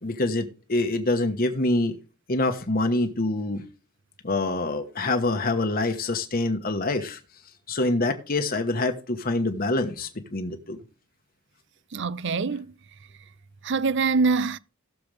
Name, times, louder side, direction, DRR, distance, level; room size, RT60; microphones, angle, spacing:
voice 1, 0.0-1.9 2.3-3.6 4.2-7.2 7.7-10.8, left 2 dB, 45° left, 1.3 m, -25 dB
voice 2, 11.9-12.7 13.6-14.6, right 4 dB, 60° right, 0.6 m, -24 dB
17.0 x 6.9 x 3.4 m
head